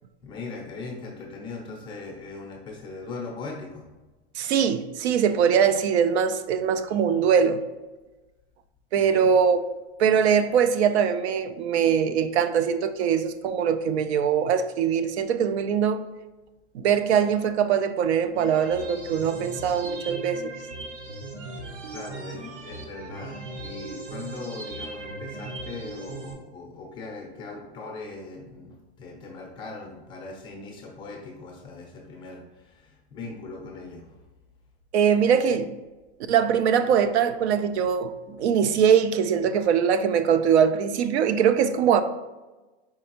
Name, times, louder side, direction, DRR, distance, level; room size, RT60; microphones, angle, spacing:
voice 1, 0.2-3.9 9.0-9.3 21.9-34.0, left 3 dB, 15° left, 0.5 m, -39 dB
voice 2, 4.4-7.6 8.9-9.6 10.0-16.1 16.7-20.5 34.9-35.8 36.3-42.0, right 7 dB, 75° right, 0.5 m, -22 dB
sound 1, 18.3-26.3, right 2 dB, 50° right, 0.9 m, -38 dB
4.6 x 3.3 x 2.9 m
supercardioid pair, 155°, 33 cm